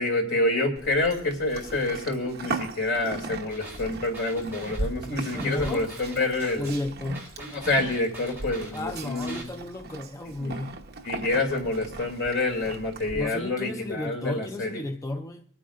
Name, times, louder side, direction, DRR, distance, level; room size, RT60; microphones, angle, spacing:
voice 1, 0.0-6.8 7.4-9.5 10.4-10.5 11.0-14.8, left 2 dB, 60° left, 2.6 m, -27 dB
Livestock farm animals working animals, 0.8-13.2, right 2 dB, 50° right, 1.0 m, -38 dB
sound 1, 3.5-9.4, right 2 dB, 10° right, 3.6 m, -44 dB
voice 2, 5.3-5.9 6.6-7.3 8.7-10.8 13.1-15.4, left 1 dB, 15° left, 0.4 m, -33 dB
24.5 x 9.3 x 2.5 m
head